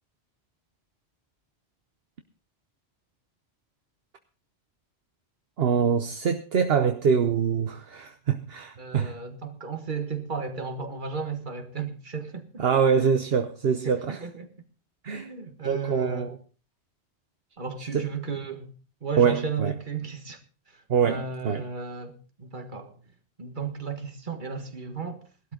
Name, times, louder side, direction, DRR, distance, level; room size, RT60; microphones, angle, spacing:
voice 1, 5.6-9.1 12.6-14.2 15.0-15.3 15.6-16.4 17.9-18.1 19.2-19.7 20.9-21.6, right 6 dB, 70° right, 1.1 m, -24 dB
voice 2, 8.8-12.6 13.8-14.5 15.1-16.3 17.6-18.7 19.0-20.4 20.7-23.0 23.4-25.2, right 5 dB, 50° right, 1.8 m, -34 dB
18.0 x 12.5 x 3.8 m
omnidirectional pair, 1.1 m